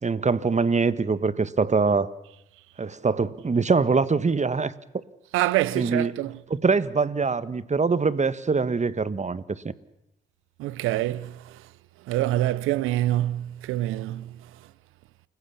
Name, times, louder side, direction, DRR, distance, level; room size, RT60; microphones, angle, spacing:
voice 1, 0.0-2.1 2.8-4.7 5.7-6.1 6.5-9.4, right 4 dB, 35° right, 1.4 m, -23 dB
voice 2, 5.3-6.4 10.6-11.6 12.1-14.3, right 15 dB, 90° right, 0.8 m, -26 dB
29.0 x 16.0 x 7.1 m
supercardioid pair, 50°, 21 cm